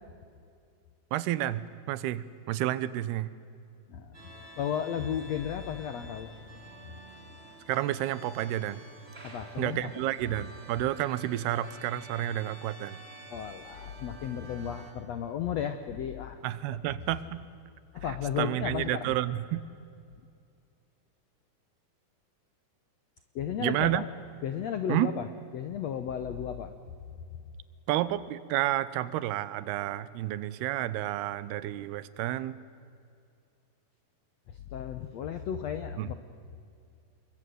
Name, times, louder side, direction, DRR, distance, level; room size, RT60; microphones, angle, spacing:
voice 1, 1.1-3.3 7.7-8.8 9.6-13.0 16.4-17.4 18.0-19.7 23.6-24.0 24.9-25.1 27.9-32.6 36.0-36.2, right 14 dB, 85° right, 17 dB, 2.9 m, -30 dB
sound 1, 4.1-14.9, right 2 dB, 15° right, 3.6 m, -49 dB
voice 2, 4.6-6.3 9.2-9.9 13.3-16.4 17.9-19.1 23.3-24.0 24.4-25.2 25.5-26.7 34.7-36.2, left 8 dB, 80° left, 9 dB, 1.5 m, -34 dB
28.0 x 22.5 x 9.4 m, 2.4 s
omnidirectional pair, 4.5 m